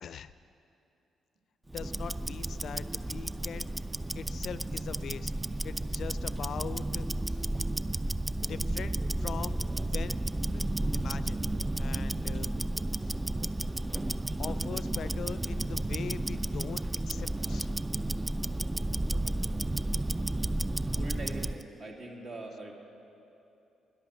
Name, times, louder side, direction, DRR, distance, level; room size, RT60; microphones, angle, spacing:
voice 1, 0.0-0.3 1.7-3.7 4.1-5.3 5.6-7.5 8.5-9.6 9.9-10.7 10.9-11.4 11.8-12.5 13.0-13.2 14.4-17.7, left 7 dB, 65° left, 14 dB, 0.4 m, -41 dB
Tick-tock, 1.7-21.6, right 1 dB, 15° right, 0.3 m, -32 dB
voice 2, 19.0-19.9 20.7-22.7, right 2 dB, 60° right, -1 dB, 2.3 m, -44 dB
12.0 x 10.0 x 7.3 m, 2.8 s
supercardioid pair, 60°, 0 cm